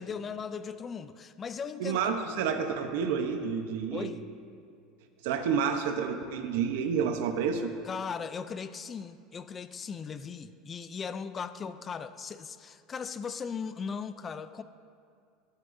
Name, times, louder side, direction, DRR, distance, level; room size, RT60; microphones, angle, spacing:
voice 1, 0.0-2.0 3.9-4.2 7.8-14.6, left 6 dB, 25° left, 12 dB, 0.4 m, -38 dB
voice 2, 1.8-4.1 5.2-7.7, right 6 dB, 80° right, 6 dB, 0.8 m, -29 dB
18.5 x 8.2 x 2.7 m, 2.3 s
cardioid pair, 150°, 0 cm